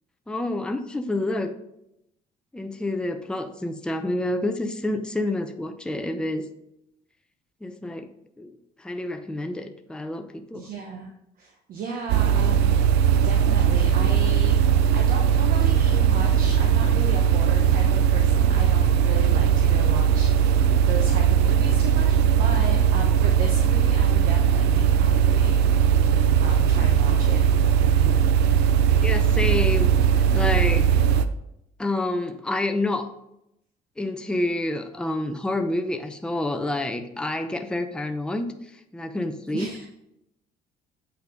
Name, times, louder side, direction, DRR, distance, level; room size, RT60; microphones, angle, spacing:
voice 1, 0.3-1.5 2.5-6.5 7.6-8.1 8.4-8.5 8.8-10.7 29.0-30.0 30.3-31.0 31.8-33.1 34.0-38.5 38.9-39.7, left 2 dB, 5° left, 6 dB, 0.6 m, -28 dB
voice 2, 10.5-11.1 11.4-12.8 13.2-14.6 14.9-25.6 26.4-27.4 39.5-39.9, right 4 dB, 60° right, 2 dB, 1.1 m, -35 dB
sound 1, 12.1-31.3, right 8 dB, 85° right, 0.6 m, -19 dB
8.3 x 5.8 x 3.8 m, 0.82 s
cardioid pair, 110°, 17 cm